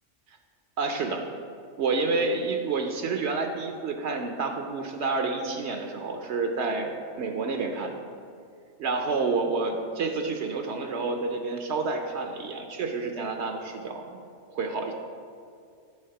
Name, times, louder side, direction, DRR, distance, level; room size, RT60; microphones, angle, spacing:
voice 1, 0.8-1.2 1.8-6.9 7.2-8.0 8.8-14.2 14.5-14.9, right 4 dB, 70° right, 4 dB, 0.9 m, -29 dB
10.0 x 3.5 x 5.7 m, 2.3 s
omnidirectional pair, 1.2 m